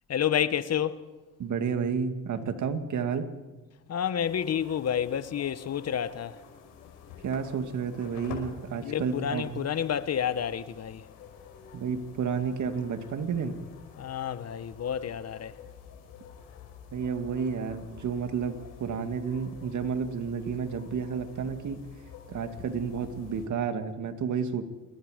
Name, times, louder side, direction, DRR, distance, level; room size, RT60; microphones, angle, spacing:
voice 1, 0.1-1.1 3.9-6.4 8.8-11.1 14.0-15.6, left 9 dB, 50° left, 1.2 m, -29 dB
voice 2, 1.4-3.3 7.2-9.7 11.7-13.5 16.9-21.8 22.3-24.6, right 6 dB, 60° right, 2.4 m, -31 dB
sound 1, 4.2-23.5, left 7 dB, 85° left, 5.5 m, -49 dB
27.5 x 22.0 x 5.2 m
supercardioid pair, 80°, 33 cm